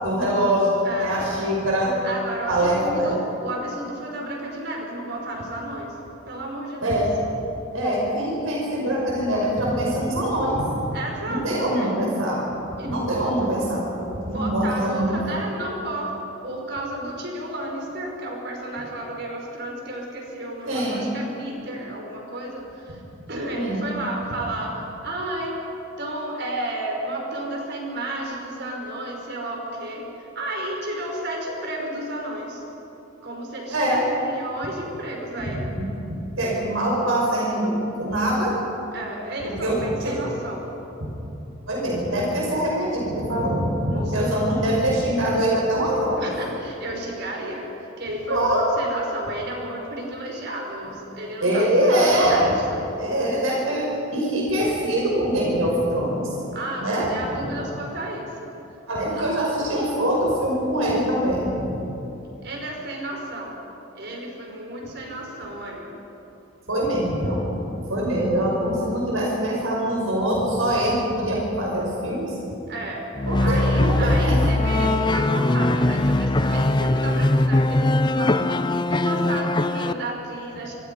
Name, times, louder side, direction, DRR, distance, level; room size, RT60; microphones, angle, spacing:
voice 1, 0.0-2.0 2.5-3.1 6.8-7.1 7.7-10.7 11.3-12.4 12.9-13.8 14.1-15.2 20.7-21.1 23.5-23.8 33.7-34.0 35.7-35.9 36.4-38.6 39.4-40.2 41.0-41.1 41.7-46.3 48.3-48.7 51.4-52.5 53.0-56.3 56.8-57.1 58.9-61.7 66.7-67.4 67.8-72.4 73.3-74.4, right 1 dB, 80° right, -3 dB, 5.6 m, -23 dB
voice 2, 0.8-1.4 2.0-6.0 6.3-7.0 10.9-12.2 12.8-13.5 14.3-16.1 16.4-23.0 23.3-25.6 26.0-32.6 33.2-35.7 38.9-40.7 43.9-44.4 46.2-52.8 56.5-58.5 59.1-59.3 62.4-63.6 64.0-65.9 72.7-73.0 73.4-80.7, right 1 dB, 55° right, 0 dB, 5.4 m, -32 dB
sound 1, 73.2-79.9, left 2 dB, 20° left, 0.5 m, -21 dB
27.0 x 24.5 x 5.5 m, 2.9 s
head